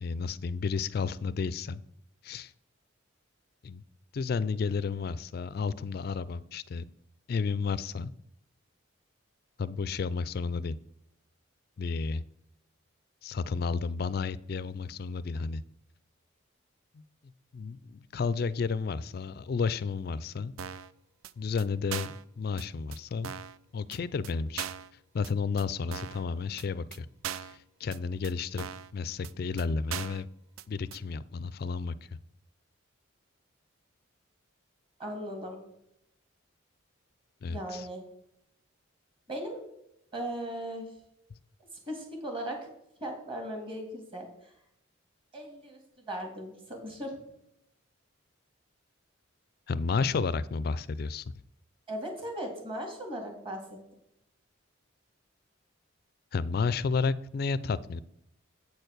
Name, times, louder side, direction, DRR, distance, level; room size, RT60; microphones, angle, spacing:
voice 1, 0.0-1.8 2.2-2.5 3.6-3.8 4.1-6.8 7.3-8.1 9.6-10.8 11.8-12.2 13.2-15.6 16.9-17.0 17.5-20.5 21.4-23.3 23.7-24.7 25.1-27.1 27.3-28.7 28.9-30.3 30.7-31.9 37.4-37.9 49.7-51.2 56.3-58.0, left 5 dB, 45° left, 17 dB, 0.3 m, -32 dB
sound 1, 20.6-20.9 21.2-21.3 21.6-21.7 21.9-22.2 22.6-22.7 22.9-23.0 23.2-23.6 23.9-24.0 24.2-24.3 24.6-24.9 25.2-25.3 25.6-25.7 25.9-26.2 26.6-26.7 26.9-27.0 27.2-27.6 27.9-28.0 28.2-28.3 28.6-28.9 29.2-29.3 29.6-29.7 29.9-30.2 30.6-30.7 30.9-31.0, right 9 dB, 85° right, 0.4 m, -39 dB
voice 2, 35.0-35.6 37.5-38.0 39.3-39.6 40.1-40.9 41.9-42.7 43.0-44.5 45.3-45.8 46.1-47.2 51.9-53.6, right 1 dB, 25° right, 2 dB, 2.0 m, -37 dB
8.2 x 4.5 x 6.5 m, 0.79 s
head